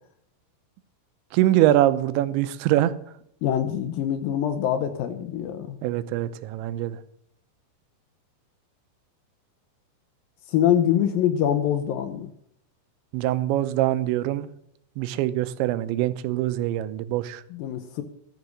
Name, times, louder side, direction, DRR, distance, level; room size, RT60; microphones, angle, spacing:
voice 1, 1.3-2.9 5.8-7.0 13.1-14.5 15.0-17.4, right 14 dB, 90° right, 13 dB, 3.0 m, -23 dB
voice 2, 3.4-5.8 10.5-12.3 17.5-18.0, left 10 dB, 75° left, 8 dB, 2.1 m, -24 dB
13.5 x 6.8 x 6.2 m, 0.70 s
omnidirectional pair, 5.1 m